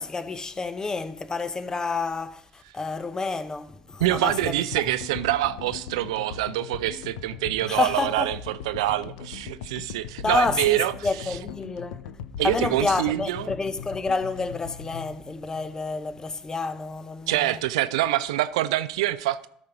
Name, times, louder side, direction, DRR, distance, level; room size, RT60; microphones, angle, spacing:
voice 1, 0.0-4.6 7.7-8.3 10.2-12.0 12.4-17.6, left 3 dB, 20° left, 0.8 m, -29 dB
sound 1, 4.0-16.3, left 8 dB, 70° left, 0.6 m, -40 dB
voice 2, 4.0-10.9 12.4-13.5 17.3-19.5, right 15 dB, 70° right, 0.4 m, -25 dB
13.0 x 4.3 x 4.9 m
figure-of-eight pair, 70°, 3 cm